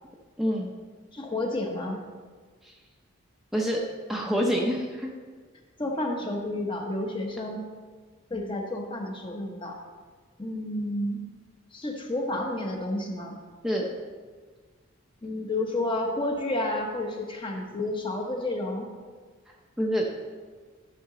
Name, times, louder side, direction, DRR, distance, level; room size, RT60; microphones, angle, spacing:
voice 1, 0.4-0.7 2.6-2.7 3.5-3.8 4.1-5.1 13.6-13.9 19.8-20.1, equal, ahead, -2 dB, 0.7 m, -26 dB
voice 2, 1.1-2.0 5.8-7.7 8.3-9.8 10.4-11.2 11.7-13.4 15.2-18.9, left 1 dB, 20° left, 2 dB, 0.9 m, -30 dB
11.0 x 6.5 x 3.8 m, 1.5 s
head